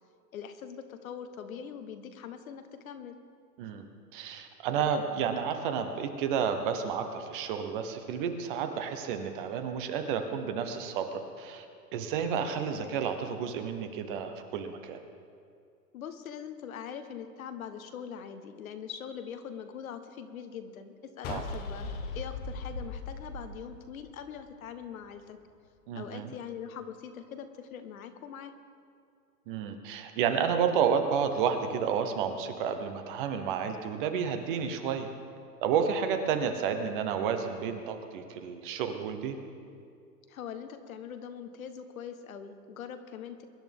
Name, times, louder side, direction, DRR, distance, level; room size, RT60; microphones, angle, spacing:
voice 1, 0.3-3.2 15.9-21.9 22.1-25.4 25.9-28.6 40.3-43.4, left 8 dB, 55° left, 8 dB, 1.3 m, -42 dB
voice 2, 4.1-11.6 11.9-15.0 21.3-21.4 25.9-26.3 29.5-35.1 35.6-39.4, right 7 dB, 30° right, 7 dB, 1.1 m, -31 dB
sound 1, 21.2-24.5, left 3 dB, 20° left, 0.9 m, -38 dB
23.5 x 10.5 x 3.6 m, 2.4 s
hypercardioid pair, 135°, 49 cm